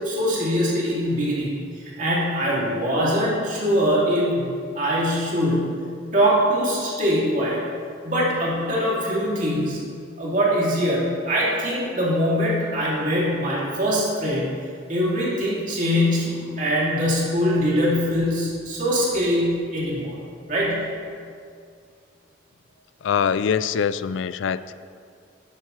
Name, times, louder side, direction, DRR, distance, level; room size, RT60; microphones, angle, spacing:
voice 1, 0.0-1.5 2.0-4.5 4.7-5.8 6.1-7.6 8.0-9.8 10.2-14.5 14.9-20.2 20.5-20.9, equal, 40° right, -6 dB, 2.6 m, -22 dB
voice 2, 23.0-24.7, left 7 dB, 75° left, 15 dB, 0.3 m, -23 dB
12.0 x 10.5 x 3.2 m, 2.2 s
head